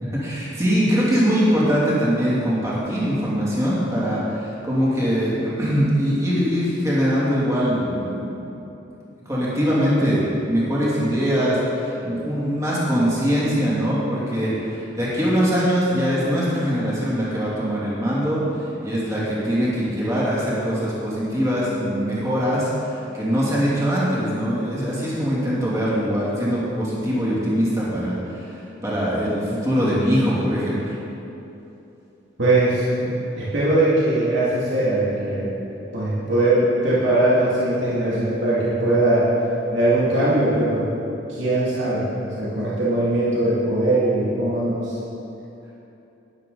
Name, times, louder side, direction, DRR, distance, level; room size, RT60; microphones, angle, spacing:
voice 1, 0.0-8.6 9.3-30.9, equal, 15° right, -8 dB, 2.7 m, -22 dB
voice 2, 32.4-35.6 35.9-39.3 39.7-40.9 41.3-45.0, right 1 dB, 75° right, -9 dB, 2.3 m, -20 dB
12.5 x 10.5 x 4.0 m, 2.9 s
head